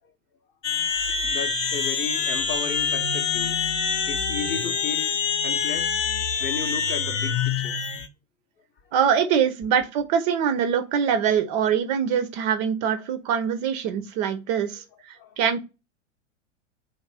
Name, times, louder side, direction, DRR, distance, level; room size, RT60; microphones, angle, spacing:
sound 1, 0.6-8.1, left 6 dB, 80° left, 0.7 m, -26 dB
voice 1, 1.0-3.8 4.1-6.0 6.3-7.8 8.8-8.9 14.8-14.9 15.1-15.4, left 7 dB, 30° left, 0.6 m, -35 dB
voice 2, 8.9-15.6, right 8 dB, 35° right, 0.4 m, -24 dB
3.1 x 2.5 x 3.2 m
hypercardioid pair, 100°, 37 cm